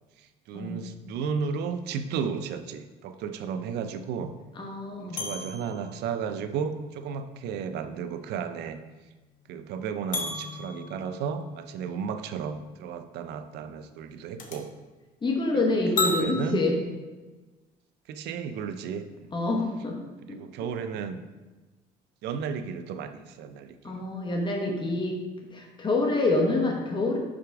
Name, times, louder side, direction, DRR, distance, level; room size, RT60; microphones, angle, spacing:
voice 1, 0.2-4.3 5.0-8.8 9.5-14.7 16.0-16.6 18.1-19.3 20.2-21.2 22.2-23.9, right 6 dB, 80° right, 10 dB, 0.5 m, -34 dB
voice 2, 4.6-5.2 15.2-16.8 19.3-20.0 20.3-20.4 23.8-25.2 25.5-27.2, left 2 dB, 30° left, 1 dB, 1.1 m, -27 dB
sound 1, 5.2-8.5 8.8-8.9 10.1-11.9 14.4-14.6 16.0-16.2, left 3 dB, 50° left, 0.9 m, -34 dB
5.7 x 5.0 x 3.5 m, 1.2 s
cardioid pair, 110°, 17 cm